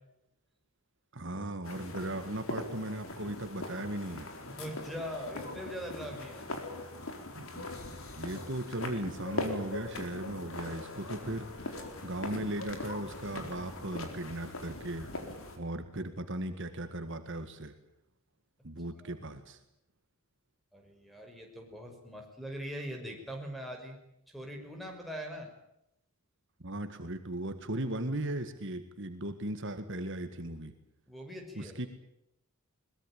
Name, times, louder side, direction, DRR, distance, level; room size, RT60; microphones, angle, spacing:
voice 1, 1.1-4.3 7.4-7.8 8.2-15.1 15.6-17.7 18.6-19.6 26.6-30.7 31.6-31.9, right 1 dB, 55° right, 8 dB, 1.9 m, -37 dB
sound 1, 1.6-15.6, left 2 dB, 65° left, 4.5 m, -41 dB
voice 2, 4.6-6.5 19.0-19.2 20.7-24.0 24.3-25.5 31.1-31.7, equal, ahead, 3 dB, 5.9 m, -41 dB
22.5 x 21.0 x 9.0 m, 0.81 s
head